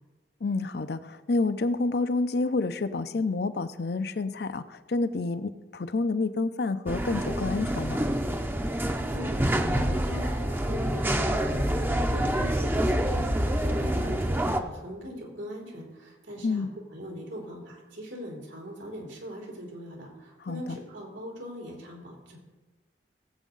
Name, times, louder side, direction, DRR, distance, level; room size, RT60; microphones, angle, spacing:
voice 1, 0.4-8.0 16.4-16.7 20.4-20.8, left 3 dB, 60° left, 12 dB, 0.5 m, -29 dB
sound 1, 6.9-14.6, right 1 dB, 10° right, 0.6 m, -27 dB
voice 2, 8.9-22.4, equal, 90° right, -1 dB, 3.8 m, -40 dB
18.5 x 8.3 x 3.9 m, 1.3 s
head